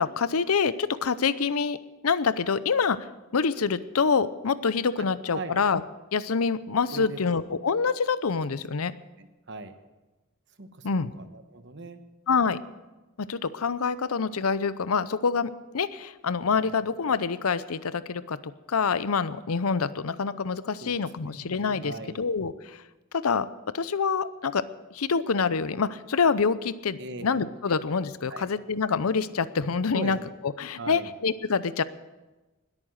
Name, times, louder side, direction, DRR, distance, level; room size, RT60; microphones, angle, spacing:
voice 1, 0.0-1.8 2.0-3.0 3.3-5.8 6.1-8.9 10.8-11.1 12.3-12.6 13.2-18.4 18.7-22.8 23.1-23.5 23.7-24.6 24.9-30.2 30.6-31.8, left 5 dB, 90° left, 15 dB, 0.7 m, -26 dB
voice 2, 9.2-9.7 10.6-10.9 11.1-12.0 16.5-16.7 20.8-21.5 21.8-22.2 27.0-27.7 28.3-28.5 29.9-30.1 30.8-31.1, right 2 dB, 55° right, 9 dB, 1.2 m, -40 dB
20.5 x 8.8 x 6.5 m, 1.1 s
head